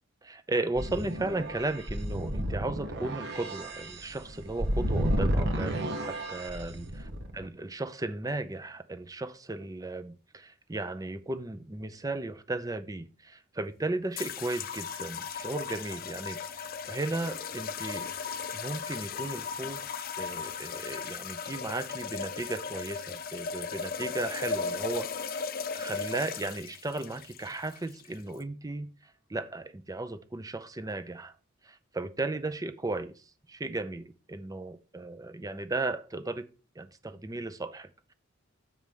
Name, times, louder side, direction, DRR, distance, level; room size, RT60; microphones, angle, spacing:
voice 1, 0.2-7.0 7.3-18.1 18.5-19.8 20.2-25.4 25.7-31.3 31.6-36.5 36.8-38.1, right 2 dB, 15° right, 0.6 m, -35 dB
sound 1, 0.8-7.5, equal, 55° right, 1.1 m, -32 dB
sound 2, 14.2-28.4, left 6 dB, 45° left, 0.6 m, -37 dB
7.5 x 4.7 x 5.3 m
head